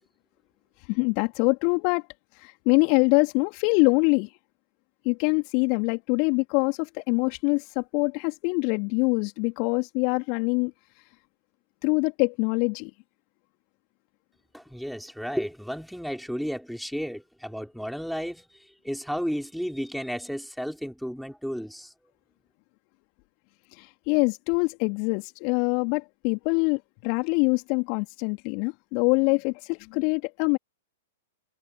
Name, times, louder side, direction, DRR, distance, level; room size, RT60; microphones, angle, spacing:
voice 1, 0.9-2.1 2.4-4.3 5.0-10.7 11.8-12.9 23.8-30.6, left 36 dB, 40° left, 3.3 m, -24 dB
voice 2, 14.5-18.5 18.8-21.9, equal, ahead, 5.4 m, -33 dB
figure-of-eight pair, 105°, 0 cm